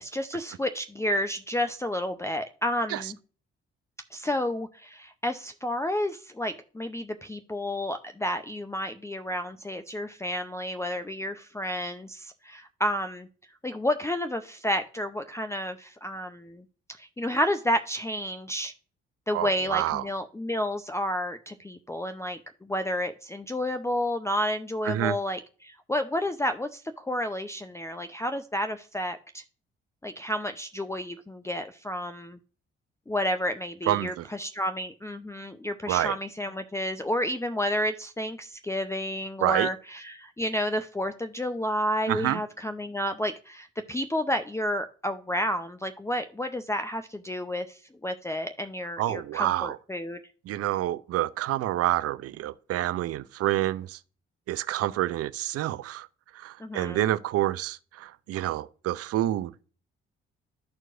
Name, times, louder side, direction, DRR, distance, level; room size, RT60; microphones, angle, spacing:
voice 1, 0.0-3.2 4.1-13.3 13.6-16.6 17.0-18.7 19.3-29.4 30.0-32.4 33.1-50.2 56.6-57.0, equal, 10° left, 0.6 m, -31 dB
voice 2, 19.3-20.0 24.9-25.2 33.9-34.3 35.9-36.1 39.4-39.7 42.1-42.4 49.0-49.8 50.5-54.0 54.5-56.1 56.4-59.6, right 14 dB, 55° right, 0.5 m, -28 dB
13.0 x 4.5 x 2.5 m
hypercardioid pair, 45°, 30 cm